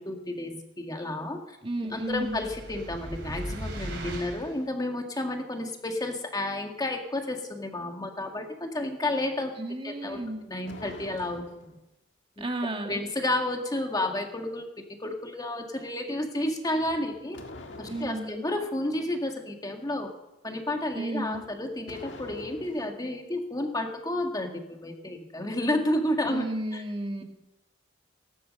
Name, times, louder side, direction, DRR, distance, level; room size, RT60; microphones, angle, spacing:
voice 1, 0.0-1.6 1.9-9.5 9.8-11.7 12.4-12.5 12.8-14.7 15.0-17.4 17.8-20.1 20.4-26.5 26.7-26.8, left 1 dB, 20° left, 3 dB, 2.0 m, -31 dB
voice 2, 1.6-2.4 9.6-10.4 12.4-13.0 17.9-18.4 20.9-21.5 26.3-27.2, right 1 dB, 30° right, 3 dB, 2.0 m, -33 dB
sound 1, 2.0-4.6, right 1 dB, 70° right, 4.4 m, -38 dB
sound 2, 10.0-11.8 16.8-18.4 21.2-23.0, left 2 dB, 75° left, 1.7 m, -46 dB
18.5 x 11.0 x 6.5 m, 0.92 s
head